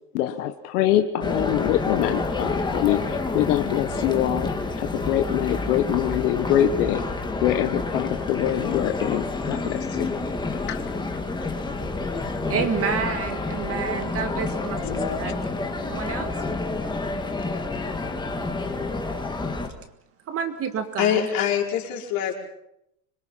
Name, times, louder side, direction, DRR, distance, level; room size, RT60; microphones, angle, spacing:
voice 1, 0.1-4.5 4.8-7.0 7.4-10.1 10.5-10.8, left 12 dB, 70° left, 8 dB, 1.4 m, -24 dB
sound 1, 1.2-19.7, left 3 dB, 10° left, 1.9 m, -29 dB
voice 2, 12.5-14.8 15.2-15.4 15.8-16.3 20.3-21.3, right 7 dB, 30° right, 8 dB, 1.7 m, -29 dB
voice 3, 14.8-15.3 21.0-22.3, left 9 dB, 45° left, 0 dB, 5.1 m, -25 dB
25.5 x 21.5 x 5.8 m, 0.82 s
supercardioid pair, 140°, 48 cm